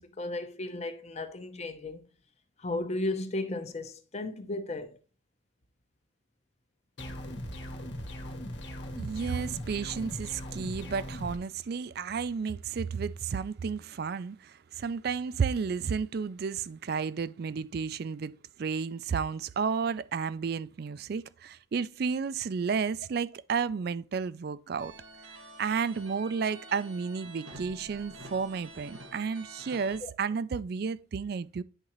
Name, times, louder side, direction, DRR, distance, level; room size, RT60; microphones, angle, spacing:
voice 1, 0.0-2.1 2.6-5.0 30.0-30.1, left 2 dB, 35° left, 0.7 m, -35 dB
sound 1, 7.0-11.4, equal, 60° left, 1.1 m, -39 dB
voice 2, 9.0-24.9 25.6-31.6, right 5 dB, 50° right, 0.3 m, -32 dB
sound 2, 24.8-30.0, right 2 dB, 80° right, 1.6 m, -48 dB
9.9 x 3.7 x 3.0 m
head